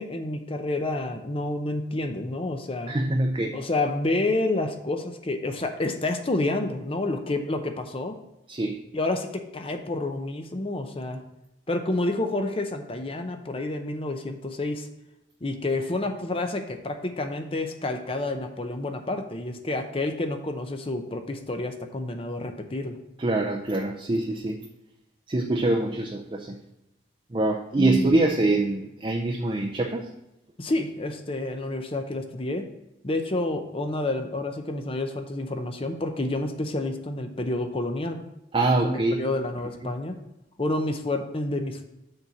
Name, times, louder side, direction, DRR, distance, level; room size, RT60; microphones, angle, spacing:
voice 1, 0.0-2.9 3.5-8.2 8.9-11.2 11.7-14.9 15.4-23.0 27.8-28.2 30.6-32.7 33.0-38.2 38.8-40.2 40.6-41.8, left 2 dB, 30° left, 6 dB, 0.6 m, -29 dB
voice 2, 2.9-3.6 8.5-8.8 23.2-24.6 25.3-26.6 27.3-30.1 38.5-39.2 39.8-39.9, right 2 dB, 30° right, 2 dB, 0.5 m, -24 dB
6.6 x 4.3 x 6.0 m, 0.89 s
head